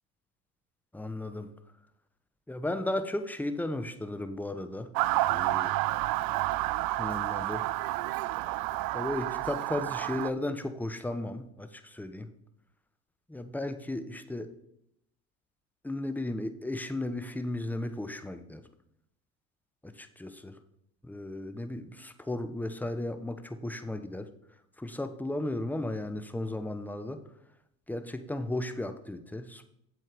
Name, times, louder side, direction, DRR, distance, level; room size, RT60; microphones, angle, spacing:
voice 1, 0.9-1.5 2.5-4.9 5.3-5.7 7.0-7.6 8.9-12.3 13.3-14.5 15.8-18.6 19.8-20.6 21.0-24.3 24.8-27.2 27.9-29.7, left 1 dB, 5° left, 9 dB, 0.9 m, -35 dB
Motor vehicle (road) / Siren, 5.0-10.3, right 17 dB, 55° right, 0.5 m, -30 dB
7.9 x 7.7 x 5.1 m, 0.78 s
hypercardioid pair, 75°, 43 cm